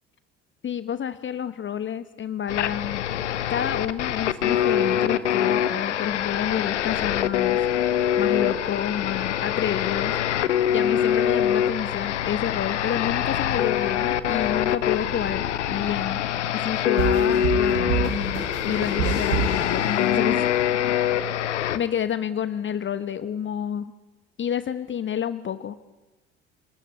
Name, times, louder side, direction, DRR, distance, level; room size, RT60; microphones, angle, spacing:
voice 1, 0.6-3.0 3.5-7.6 8.2-10.4 10.7-15.4 15.7-16.2 16.5-20.8 21.7-23.9 24.4-25.8, left 9 dB, 35° left, 13 dB, 1.1 m, -29 dB
sound 1, 2.5-21.8, left 10 dB, 75° left, 1.2 m, -24 dB
sound 2, 17.0-20.6, right 9 dB, 65° right, 3.3 m, -29 dB
25.5 x 20.5 x 9.8 m, 1.1 s
figure-of-eight pair, 55°, 35 cm